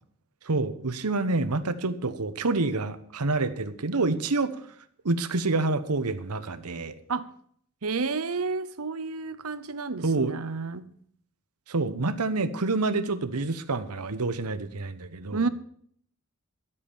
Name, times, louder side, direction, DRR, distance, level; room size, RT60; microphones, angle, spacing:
voice 1, 0.4-4.6 5.0-6.9 10.0-10.3 11.7-15.5, right 3 dB, 90° right, 1.0 m, -27 dB
voice 2, 7.8-10.9 15.3-15.5, right 4 dB, 70° right, 0.9 m, -30 dB
12.0 x 8.6 x 6.9 m
head